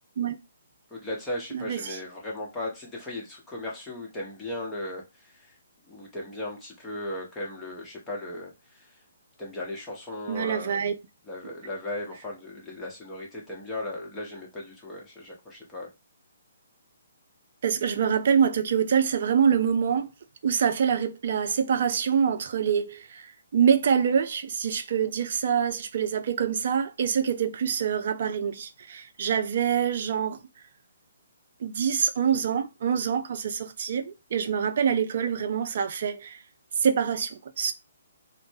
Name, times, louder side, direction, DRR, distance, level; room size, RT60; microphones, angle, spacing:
voice 1, 0.9-5.6 5.8-9.0 9.4-10.9 11.2-15.9, left 1 dB, 10° left, 0.8 m, -37 dB
voice 2, 1.5-2.0 10.3-10.9 17.6-20.1 20.4-23.3 23.5-30.4 31.6-36.4 36.8-37.7, right 7 dB, 55° right, 0.4 m, -25 dB
2.0 x 2.0 x 3.3 m
figure-of-eight pair, 140°, 0 cm